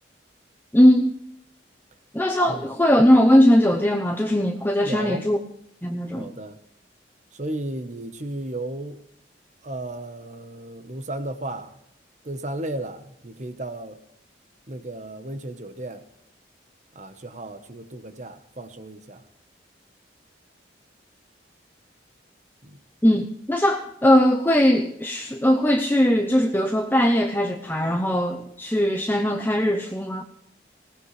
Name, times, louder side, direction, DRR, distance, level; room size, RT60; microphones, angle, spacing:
voice 1, 0.7-1.1 2.1-5.4 5.8-6.3 23.0-30.2, equal, 10° left, 0.8 m, -19 dB
voice 2, 4.8-5.3 6.1-6.6 7.3-9.0 9.6-11.8 12.2-14.0 14.7-16.1 16.9-19.2 22.6-22.8, right 1 dB, 40° right, 1.2 m, -34 dB
20.0 x 17.5 x 3.3 m
head